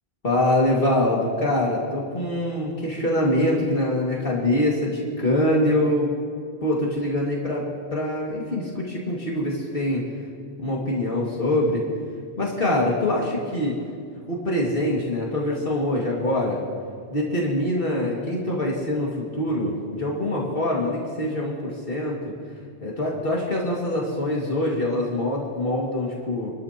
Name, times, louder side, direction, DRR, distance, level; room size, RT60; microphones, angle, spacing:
voice 1, 0.2-6.1 6.6-7.6 7.9-10.0 10.6-11.8 12.4-13.8 14.3-16.6 17.1-22.3 22.8-26.5, left 1 dB, 55° left, -4 dB, 2.3 m, -24 dB
29.0 x 13.0 x 2.9 m, 2.1 s
omnidirectional pair, 1.1 m